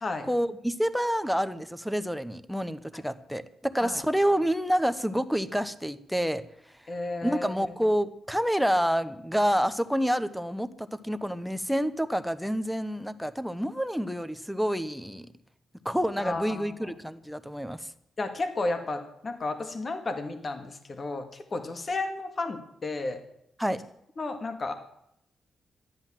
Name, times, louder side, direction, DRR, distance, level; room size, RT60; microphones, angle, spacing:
voice 1, 0.3-6.4 7.2-15.3 15.8-17.9 23.6-23.8, equal, ahead, 11 dB, 0.9 m, -28 dB
voice 2, 6.9-7.7 16.2-16.9 18.2-23.2 24.2-24.7, left 3 dB, 40° left, 7 dB, 1.9 m, -33 dB
13.5 x 11.5 x 7.5 m, 0.75 s
cardioid pair, 105°, 0 cm